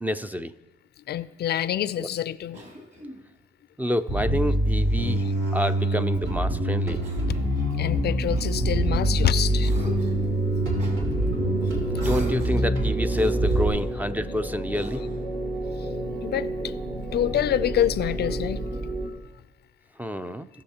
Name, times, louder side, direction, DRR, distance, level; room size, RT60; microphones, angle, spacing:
voice 1, 0.0-0.5 2.0-2.1 3.8-5.2 5.5-7.0 10.6-10.8 11.9-15.0 20.0-20.5, equal, 10° right, 11 dB, 0.4 m, -28 dB
voice 2, 1.1-2.6 5.0-5.1 7.3-7.4 7.8-9.7 16.2-16.7 17.1-18.9, left 11 dB, 55° left, 16 dB, 0.4 m, -26 dB
Cough, 2.5-3.3 4.6-5.8 7.0-7.5 8.3-9.2 9.6-10.3 10.8-11.0 12.0-12.7 13.1-13.9 14.7-15.3, equal, 35° right, 2.4 m, -42 dB
Bass guitar, 4.1-13.7, right 1 dB, 80° right, 2.6 m, -25 dB
sound 1, 8.4-19.1, right 2 dB, 60° right, 2.4 m, -31 dB
18.5 x 6.3 x 2.9 m, 1.2 s
cardioid pair, 90°, 20 cm